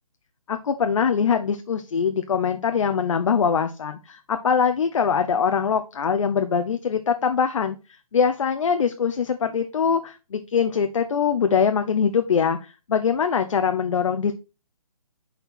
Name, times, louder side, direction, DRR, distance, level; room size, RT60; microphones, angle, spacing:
voice 1, 0.5-7.8 8.1-14.3, left 6 dB, 60° left, 7 dB, 0.6 m, -23 dB
6.9 x 4.5 x 4.1 m, 0.30 s
hypercardioid pair, 155°, 19 cm